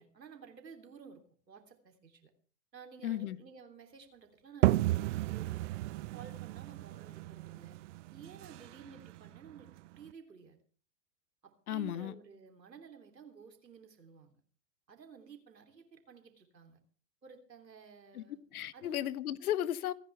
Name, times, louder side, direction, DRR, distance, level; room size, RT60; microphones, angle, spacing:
voice 1, 0.0-2.3 2.7-7.8 8.1-10.6 11.4-14.3 14.9-16.8 17.2-18.4 18.7-19.0, right 6 dB, 85° right, 3.4 m, -54 dB
voice 2, 3.0-3.4 11.7-12.1 18.1-18.2 18.5-19.9, left 12 dB, 60° left, 1.2 m, -34 dB
sound 1, 4.6-10.1, right 17 dB, 50° right, 0.8 m, -34 dB
27.5 x 10.5 x 3.4 m
hypercardioid pair, 105°, 49 cm